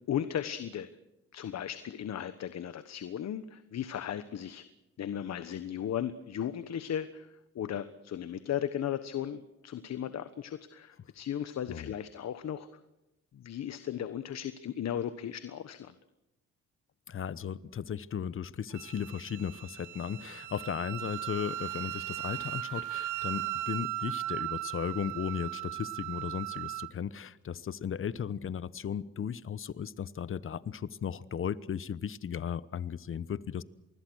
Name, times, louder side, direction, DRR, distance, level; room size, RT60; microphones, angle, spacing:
voice 1, 0.1-0.9 1.3-4.6 5.0-7.3 7.5-12.7 13.3-15.9, left 10 dB, 60° left, 12 dB, 1.3 m, -36 dB
voice 2, 17.1-33.6, left 8 dB, 45° left, 18 dB, 1.0 m, -36 dB
Wind instrument woodwind instrument, 18.7-26.9, right 15 dB, 80° right, 1.0 m, -37 dB
27.0 x 20.5 x 6.4 m, 0.94 s
cardioid pair, 90°, 30 cm